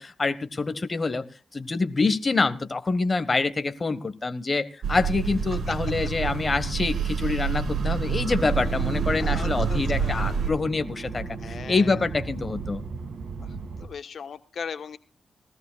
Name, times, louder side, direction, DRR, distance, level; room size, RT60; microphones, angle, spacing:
voice 1, 0.0-12.8, left 3 dB, 30° left, 11 dB, 1.3 m, -26 dB
sound 1, 4.8-10.5, right 6 dB, 75° right, 2.4 m, -28 dB
Accelerating revving vroom, 7.7-13.9, right 4 dB, 60° right, 2.0 m, -35 dB
voice 2, 9.2-10.3 11.4-12.0 13.4-13.5 13.8-15.0, left 6 dB, 70° left, 9 dB, 1.1 m, -39 dB
19.5 x 16.5 x 2.3 m, 0.36 s
wide cardioid pair, 110°, 0 cm